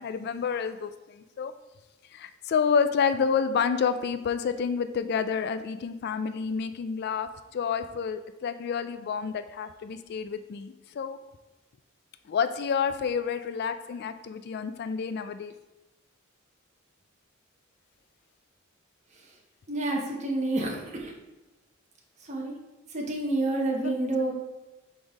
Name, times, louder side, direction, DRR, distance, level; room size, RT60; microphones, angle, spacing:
voice 1, 0.0-1.5 2.1-11.2 12.3-15.5 23.8-24.1, left 6 dB, 50° left, 11 dB, 0.3 m, -29 dB
voice 2, 19.7-21.1 22.3-22.5 22.9-24.3, right 2 dB, 35° right, -1 dB, 1.0 m, -28 dB
6.1 x 3.6 x 4.8 m, 1.1 s
head